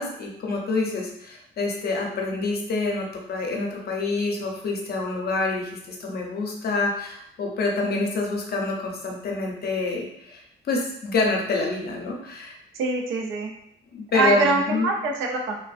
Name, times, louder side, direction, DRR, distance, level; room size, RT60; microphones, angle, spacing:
voice 1, 0.0-10.4 10.7-12.5 13.9-14.9, left 3 dB, 55° left, 0 dB, 0.6 m, -27 dB
voice 2, 12.7-13.5 14.1-15.6, right 3 dB, 85° right, 1 dB, 0.5 m, -24 dB
2.4 x 2.2 x 2.4 m, 0.75 s
cardioid pair, 90°, 20 cm